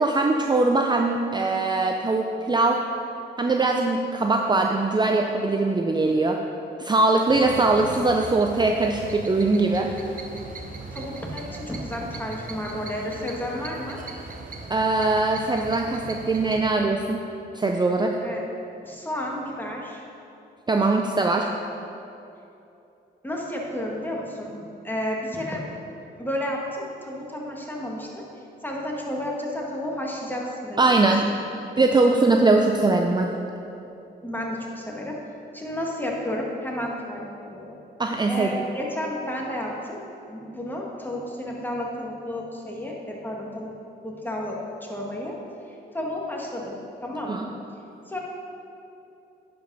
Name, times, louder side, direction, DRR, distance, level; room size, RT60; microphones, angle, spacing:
voice 1, 0.0-2.8 3.4-6.4 6.8-9.9 14.7-17.2 17.5-18.2 20.7-21.5 30.8-31.3 31.8-33.3 38.0-38.5 47.3-47.5, right 3 dB, 25° right, 2 dB, 0.6 m, -21 dB
sound 1, 7.3-16.7, right 3 dB, 45° right, 1.1 m, -39 dB
voice 2, 10.9-14.0 18.2-18.4 18.8-20.0 23.2-24.5 24.8-25.7 26.2-28.2 28.6-31.0 31.3-31.4 34.2-35.2 35.5-37.8 38.3-40.0 40.3-43.7 44.0-45.4 45.9-47.5 48.1-48.2, left 1 dB, 10° left, -2 dB, 1.9 m, -32 dB
10.0 x 5.1 x 5.5 m, 2.8 s
cardioid pair, 65°, 19 cm